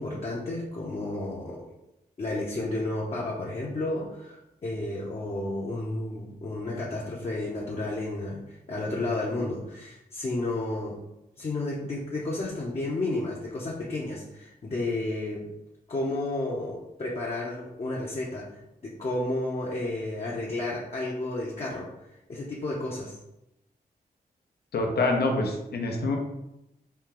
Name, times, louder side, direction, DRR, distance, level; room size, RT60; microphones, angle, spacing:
voice 1, 0.0-1.6 2.2-11.0 11.4-15.5 15.9-21.9 22.3-23.2, left 2 dB, 40° left, -4 dB, 0.7 m, -32 dB
voice 2, 24.7-26.2, left 2 dB, 85° left, 2 dB, 0.8 m, -26 dB
4.4 x 2.8 x 3.7 m, 0.88 s
wide cardioid pair, 145°, 16 cm